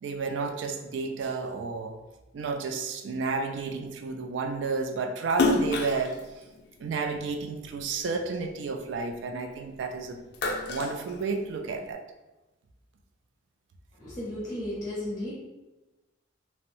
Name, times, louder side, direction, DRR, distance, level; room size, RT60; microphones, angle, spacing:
voice 1, 0.0-2.0 2.3-6.4 6.8-10.2 10.7-12.0, right 4 dB, 70° right, 5 dB, 0.3 m, -31 dB
Splash splatter, 5.3-7.9 8.3-9.8 10.1-11.8, left 3 dB, 55° left, 0.3 m, -30 dB
voice 2, 14.0-15.3, left 1 dB, 15° left, -7 dB, 0.7 m, -34 dB
3.0 x 2.0 x 2.6 m, 1.1 s
head